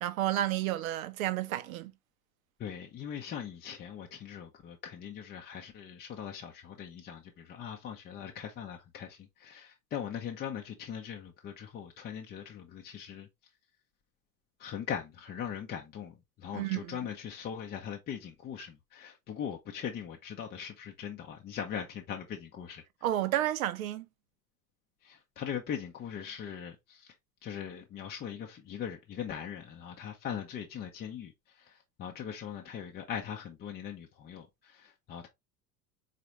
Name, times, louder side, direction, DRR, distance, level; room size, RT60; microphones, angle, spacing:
voice 1, 0.0-1.9 16.5-17.0 23.0-24.1, right 13 dB, 60° right, 0.7 m, -31 dB
voice 2, 2.6-13.3 14.6-22.8 25.0-27.1 27.4-31.3 31.6-35.3, left 8 dB, 20° left, 0.6 m, -40 dB
4.1 x 3.9 x 3.0 m
figure-of-eight pair, 80°, 47 cm